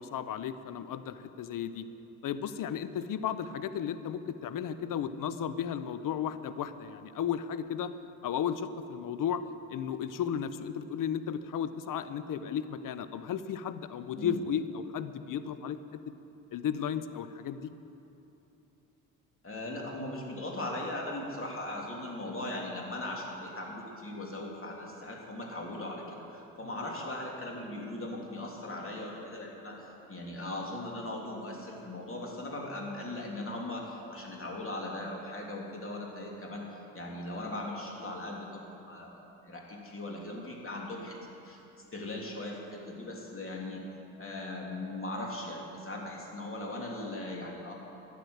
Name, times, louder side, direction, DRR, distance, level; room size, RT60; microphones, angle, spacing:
voice 1, 0.0-1.9 2.2-7.9 8.2-9.4 9.7-15.8 16.5-17.6, left 8 dB, 50° left, 12 dB, 0.8 m, -34 dB
voice 2, 19.4-41.2 41.4-41.6 41.9-43.8 44.2-47.7, left 1 dB, 30° left, -1 dB, 3.5 m, -39 dB
13.0 x 9.6 x 8.1 m, 2.9 s
hypercardioid pair, 50°, 42 cm